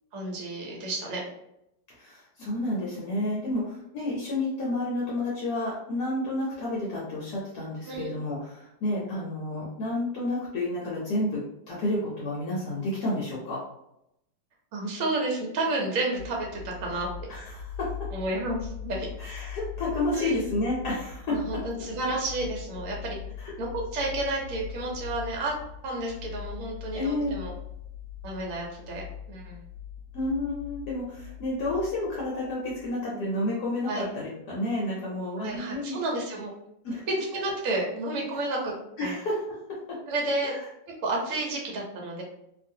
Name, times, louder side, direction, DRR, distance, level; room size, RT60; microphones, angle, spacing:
voice 1, 0.1-1.2 7.9-8.1 14.7-17.3 18.1-19.1 20.1-20.6 21.3-23.2 23.6-25.5 25.8-27.5 28.2-29.6 33.0-33.3 33.9-34.1 35.4-36.5 37.3-38.7 39.0-39.2 40.1-40.5 41.0-42.2, right 2 dB, 60° right, -1 dB, 1.0 m, -31 dB
voice 2, 1.9-11.4 11.7-13.6 17.3-17.9 19.2-21.6 23.4-23.5 26.9-27.3 30.1-36.0 36.8-37.1 39.0-40.0 40.4-40.6, left 1 dB, 65° left, -5 dB, 1.2 m, -30 dB
sound 1, 16.1-32.9, left 8 dB, 85° right, 1.4 m, -41 dB
2.9 x 2.4 x 2.7 m, 0.82 s
omnidirectional pair, 2.0 m